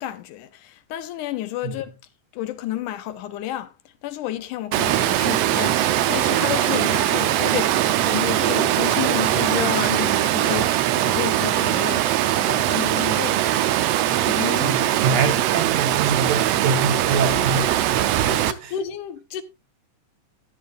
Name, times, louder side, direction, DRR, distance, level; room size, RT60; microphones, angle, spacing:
voice 1, 0.0-1.9 2.3-3.7 4.0-13.4 14.1-15.0 18.3-19.4, left 13 dB, 85° left, 2.3 m, -31 dB
Water, 4.7-18.5, right 13 dB, 80° right, 1.4 m, -21 dB
voice 2, 14.6-18.3 18.6-18.7, right 4 dB, 60° right, 2.3 m, -25 dB
14.0 x 10.0 x 2.4 m
omnidirectional pair, 3.6 m